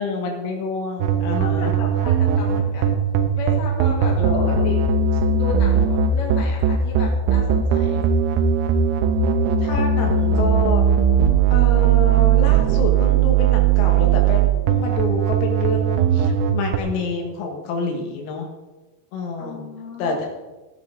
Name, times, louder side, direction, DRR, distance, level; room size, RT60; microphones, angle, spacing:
voice 1, 0.0-1.7 4.2-4.7 9.6-10.8 11.5-18.5 19.1-19.6 20.0-20.3, left 3 dB, 80° left, 2 dB, 4.2 m, -27 dB
sound 1, 1.0-16.8, right 7 dB, 90° right, 3.6 m, -18 dB
voice 2, 1.4-3.0 3.4-4.2 4.6-4.8 5.3-8.0 19.4-20.3, left 3 dB, 50° left, -4 dB, 4.0 m, -33 dB
15.5 x 10.0 x 3.7 m, 1.1 s
omnidirectional pair, 6.0 m